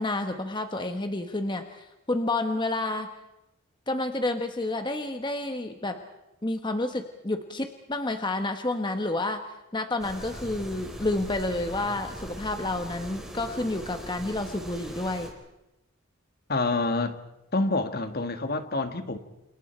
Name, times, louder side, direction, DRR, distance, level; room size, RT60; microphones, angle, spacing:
voice 1, 0.0-3.1 3.9-6.0 6.4-9.4 9.7-15.3, left 2 dB, 20° left, 6 dB, 1.2 m, -30 dB
sound 1, 10.0-15.3, right 1 dB, ahead, 3.9 m, -40 dB
voice 2, 16.5-17.2 17.5-19.2, left 2 dB, 45° left, 8 dB, 1.7 m, -27 dB
28.5 x 28.5 x 4.5 m, 0.93 s
head